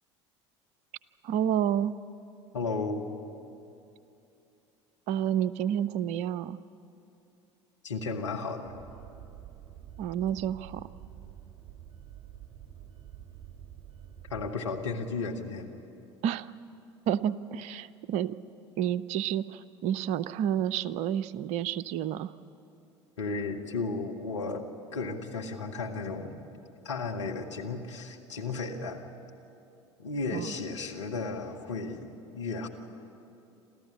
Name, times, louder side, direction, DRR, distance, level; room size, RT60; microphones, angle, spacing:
voice 1, 1.2-1.9 5.1-6.6 10.0-10.9 16.2-16.5 17.1-18.4 18.8-22.3 30.3-30.5, right 10 dB, 50° right, 17 dB, 0.6 m, -29 dB
voice 2, 2.5-3.0 7.8-8.7 14.3-15.7 23.2-24.6 24.9-26.3 26.8-29.0 30.0-32.0 32.3-32.7, left 3 dB, 80° left, 1 dB, 1.8 m, -34 dB
sound 1, 8.6-14.5, right 10 dB, 30° right, 3.3 m, -48 dB
27.5 x 14.5 x 10.0 m, 2.8 s
figure-of-eight pair, 70°, 15 cm